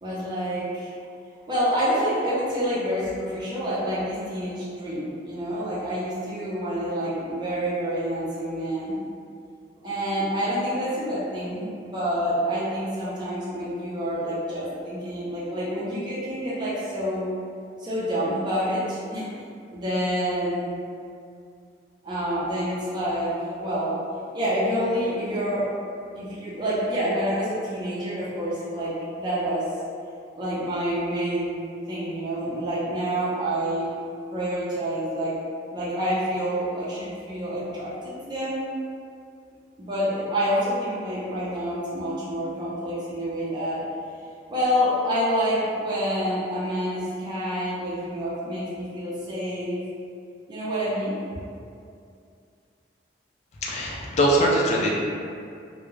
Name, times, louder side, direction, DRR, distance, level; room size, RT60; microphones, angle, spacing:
voice 1, 0.0-0.9 1.5-9.0 9.8-17.2 17.8-19.3 19.7-20.7 22.0-23.3 23.6-24.0 24.3-25.6 26.1-29.7 30.4-31.6 31.9-33.9 34.3-35.3 35.7-38.6 39.8-43.8 44.5-49.8 50.5-51.2, equal, 25° right, -10 dB, 0.6 m, -27 dB
voice 2, 53.6-54.9, equal, 35° left, -3 dB, 0.4 m, -22 dB
2.3 x 2.1 x 3.1 m, 2.4 s
head